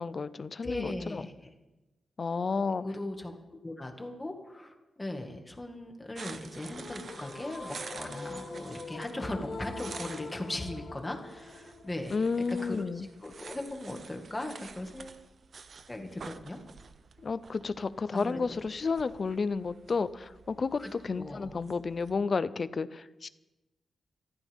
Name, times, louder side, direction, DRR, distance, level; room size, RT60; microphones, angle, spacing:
voice 1, 0.0-1.2 2.2-2.8 12.1-13.1 17.2-23.3, left 4 dB, 45° left, 14 dB, 0.7 m, -31 dB
voice 2, 0.6-1.5 2.8-12.1 12.5-15.2 15.9-16.6 18.1-18.6 20.8-21.5, left 1 dB, 15° left, 3 dB, 2.1 m, -39 dB
sound 1, 6.1-22.1, right 5 dB, 55° right, 0.9 m, -49 dB
sound 2, 6.6-13.6, left 3 dB, 70° left, 2.9 m, -45 dB
26.5 x 14.0 x 3.7 m, 1.1 s
wide cardioid pair, 125°, 0 cm